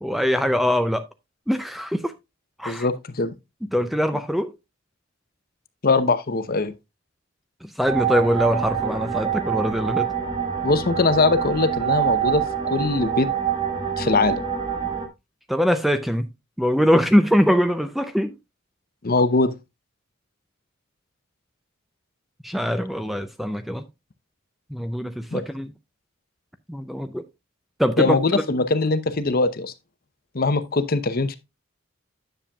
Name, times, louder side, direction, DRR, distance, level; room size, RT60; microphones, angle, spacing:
voice 1, 0.0-1.0 1.5-2.1 2.6-2.9 3.7-4.5 7.6-10.1 15.5-16.3 16.6-18.3 22.4-23.9 24.7-25.7 26.7-27.2 27.8-28.2, equal, ahead, 0.4 m, -22 dB
voice 2, 2.7-3.3 5.8-6.7 10.6-13.3 14.0-14.4 19.0-19.5 25.3-25.4 28.0-29.7 30.3-31.3, left 3 dB, 45° left, 0.7 m, -21 dB
sound 1, 7.9-15.1, right 8 dB, 25° right, 1.4 m, -26 dB
10.0 x 6.9 x 2.3 m
head